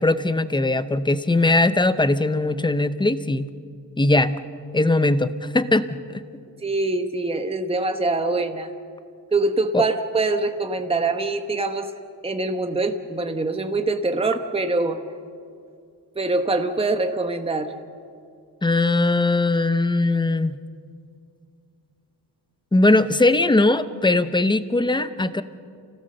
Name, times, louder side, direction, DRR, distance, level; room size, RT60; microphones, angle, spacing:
voice 1, 0.0-3.5 4.0-4.4 4.7-6.0 9.7-9.8 18.6-20.6 22.7-25.4, left 2 dB, 10° left, 12 dB, 0.7 m, -20 dB
voice 2, 6.6-8.7 9.3-11.9 12.2-15.0 16.2-17.7, right 3 dB, 15° right, 7 dB, 1.0 m, -24 dB
29.5 x 17.0 x 6.8 m, 2.3 s
wide cardioid pair, 135°, 41 cm